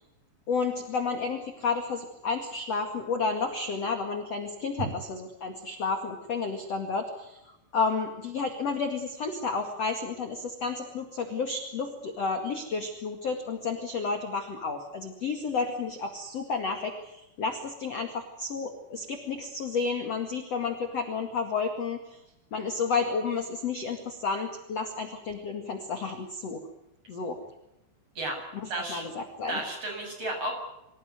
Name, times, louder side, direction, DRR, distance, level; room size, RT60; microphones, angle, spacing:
voice 1, 0.5-4.9 5.4-7.4 7.7-22.2 22.5-26.6 27.1-27.4 28.6-29.6, left 4 dB, 45° left, 5 dB, 2.4 m, -31 dB
voice 2, 28.7-29.0 29.5-30.5, right 1 dB, 30° right, 2 dB, 8.2 m, -32 dB
25.5 x 16.5 x 9.5 m, 0.91 s
omnidirectional pair, 5.4 m